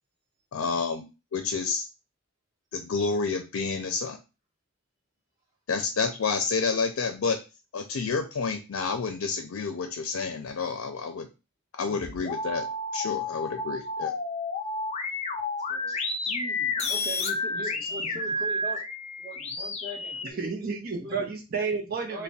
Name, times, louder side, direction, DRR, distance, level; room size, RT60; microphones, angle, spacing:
voice 1, 0.5-1.0 1.3-1.9 2.7-4.2 5.7-7.4 7.7-11.3 11.8-12.6 12.9-14.1, left 4 dB, 85° left, 6 dB, 0.5 m, -29 dB
sound 1, 11.9-20.3, left 3 dB, 30° left, 0.5 m, -31 dB
voice 2, 15.9-18.8 19.2-20.4 21.0-21.3 22.1-22.2, equal, 20° right, -7 dB, 1.2 m, -41 dB
voice 3, 17.7-18.2 20.2-22.2, right 4 dB, 45° right, -1 dB, 0.7 m, -32 dB
3.3 x 2.2 x 4.0 m, 0.29 s
head